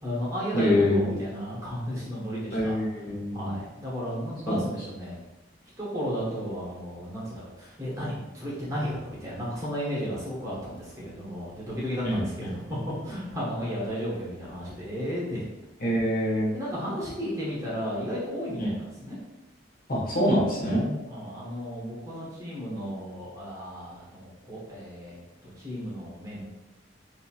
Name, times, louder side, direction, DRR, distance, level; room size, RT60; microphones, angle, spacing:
voice 1, 0.0-2.8 3.3-5.2 5.8-15.5 16.5-19.2 21.1-26.4, equal, 15° right, -7 dB, 0.8 m, -34 dB
voice 2, 0.5-1.2 2.5-3.5 4.5-4.6 12.0-12.5 13.0-13.1 15.8-16.5 18.6-18.7 19.9-20.9, left 1 dB, 50° left, -4 dB, 0.8 m, -25 dB
2.8 x 2.6 x 2.3 m, 1.0 s
head